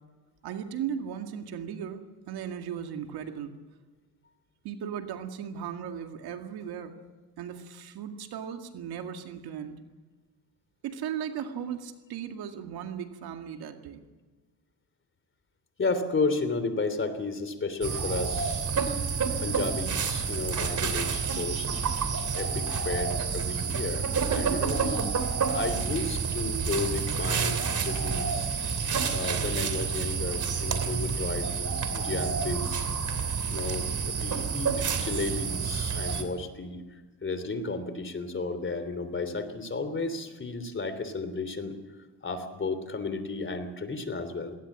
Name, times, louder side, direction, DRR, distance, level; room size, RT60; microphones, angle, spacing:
voice 1, 0.4-3.5 4.6-6.9 7.4-9.8 10.8-14.0, right 8 dB, 75° right, 6 dB, 2.2 m, -37 dB
voice 2, 15.8-18.7 19.4-21.8 22.3-25.1 25.5-28.5 29.1-32.9 33.5-41.7 42.2-44.5, left 3 dB, 30° left, 11 dB, 3.2 m, -33 dB
sound 1, 17.8-36.2, right 6 dB, 50° right, 3.1 m, -29 dB
20.5 x 18.5 x 7.5 m, 1.3 s
cardioid pair, 85°, 39 cm